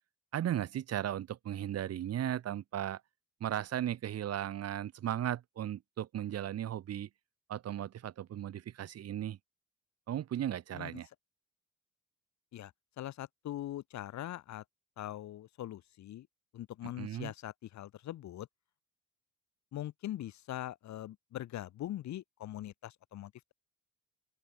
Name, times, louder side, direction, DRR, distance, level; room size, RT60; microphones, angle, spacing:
voice 1, 0.3-3.0 3.4-7.1 7.5-9.4 10.1-11.1 17.0-17.3, right 11 dB, 55° right, 0.9 m, -36 dB
voice 2, 12.5-14.6 15.0-16.3 16.5-18.5 19.7-23.5, left 13 dB, 65° left, 1.0 m, -42 dB
open air
cardioid pair, 90°, 30 cm